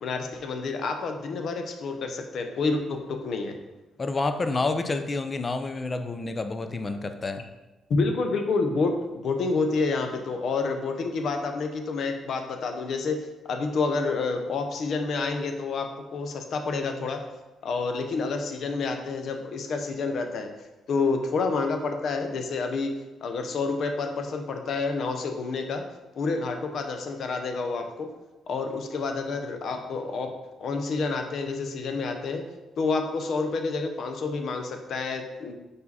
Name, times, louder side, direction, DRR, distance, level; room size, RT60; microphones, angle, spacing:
voice 1, 0.0-3.6 7.9-13.2 13.5-17.2 17.6-20.5 20.9-23.0 23.2-25.8 26.2-28.1 28.5-30.3 30.6-32.4 32.8-35.5, left 4 dB, 65° left, 5 dB, 0.8 m, -28 dB
voice 2, 4.0-7.4, left 3 dB, 30° left, 8 dB, 0.5 m, -29 dB
5.0 x 4.7 x 4.1 m, 1.1 s
cardioid pair, 90°, 0 cm